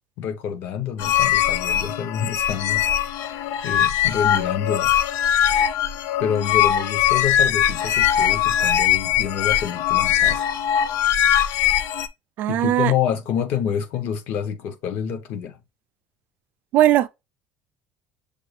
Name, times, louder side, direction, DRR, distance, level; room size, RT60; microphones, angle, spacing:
voice 1, 0.2-2.9 3.2-4.9 6.2-10.4 12.5-15.6, left 8 dB, 50° left, 0.8 m, -27 dB
sound 1, 1.0-12.1, left 10 dB, 75° left, 0.4 m, -21 dB
voice 2, 12.4-12.9 16.7-17.1, right 13 dB, 45° right, 0.3 m, -18 dB
6.6 x 2.3 x 3.2 m
cardioid pair, 175°, 4 cm